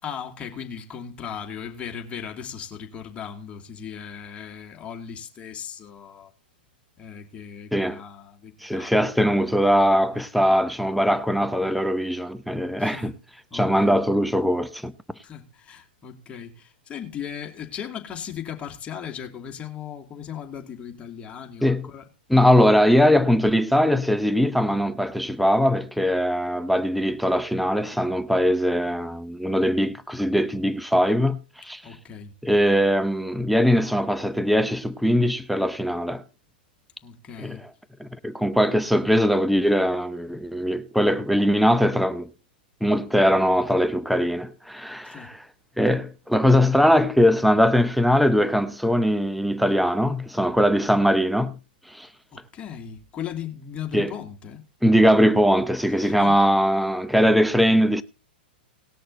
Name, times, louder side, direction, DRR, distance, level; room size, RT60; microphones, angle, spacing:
voice 1, 0.0-6.3 7.0-8.9 12.8-13.2 13.5-14.0 15.2-22.5 31.8-32.3 37.0-37.7 45.0-45.3 52.3-54.6 55.8-56.4, left 8 dB, 25° left, 2.7 m, -37 dB
voice 2, 8.6-13.1 13.5-14.9 21.6-21.9 22.3-31.8 32.4-36.2 37.4-37.6 38.0-42.3 42.8-45.4 45.8-51.5 51.9-52.1 53.9-54.1 54.8-58.0, equal, ahead, 0.7 m, -21 dB
19.0 x 6.4 x 4.0 m
hypercardioid pair, 110°, 5 cm